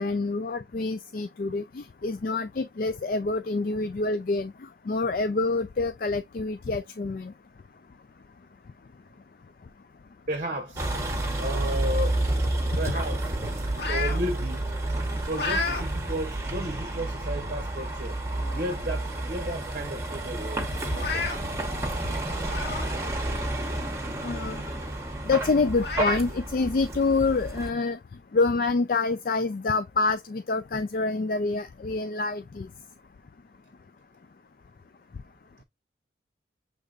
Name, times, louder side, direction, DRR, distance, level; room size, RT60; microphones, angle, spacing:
voice 1, 0.0-4.5 4.9-7.3 24.2-24.6 25.3-28.0 28.3-32.7, left 3 dB, 50° left, 0.4 m, -27 dB
voice 2, 10.3-10.9 11.4-14.7 15.1-18.2 18.5-21.3, right 1 dB, 45° right, 0.8 m, -34 dB
Vehicle, 10.8-27.7, right 1 dB, 15° right, 1.1 m, -30 dB
sound 1, 12.9-14.2 14.7-15.8 16.3-16.5 17.4-17.5 17.9-18.0 18.3-18.9 19.2-19.3 19.6-19.7 20.8-21.4 22.4-22.9 23.3-23.4 25.0-25.1 25.8-26.2, left 4 dB, 65° left, 1.7 m, -32 dB
6.5 x 3.4 x 2.4 m
head